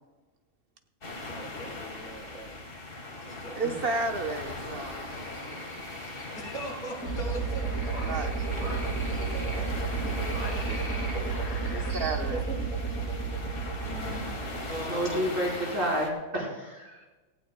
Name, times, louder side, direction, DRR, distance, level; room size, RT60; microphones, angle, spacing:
sound 1, 1.0-16.1, left 2 dB, 40° left, 1.8 m, -39 dB
voice 1, 1.3-2.5 3.2-3.8 6.3-9.8 10.0-11.3 11.7-12.6 13.8-15.4, right 1 dB, 80° left, -5 dB, 4.8 m, -42 dB
voice 2, 3.6-5.1 6.0-6.1 8.0-8.3 10.1-10.6 11.7-12.4, right 3 dB, 40° right, 4 dB, 1.2 m, -33 dB
sound 2, 5.1-12.1, left 1 dB, 25° left, 2.3 m, -42 dB
sound 3, 7.0-15.2, right 4 dB, 90° right, 5.2 m, -32 dB
voice 3, 14.8-17.1, equal, 60° right, -4 dB, 4.4 m, -30 dB
18.0 x 15.5 x 2.3 m, 1.2 s
omnidirectional pair, 1.5 m